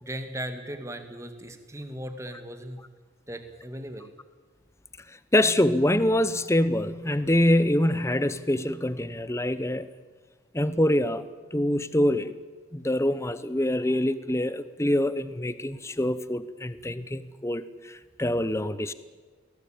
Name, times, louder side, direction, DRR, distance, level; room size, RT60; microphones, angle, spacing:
voice 1, 0.0-2.8 3.3-4.1, right 1 dB, 15° right, 2.0 m, -37 dB
voice 2, 5.1-9.9 10.5-11.2 11.5-12.3 12.7-18.9, left 1 dB, 15° left, 0.9 m, -25 dB
22.0 x 18.0 x 8.8 m
head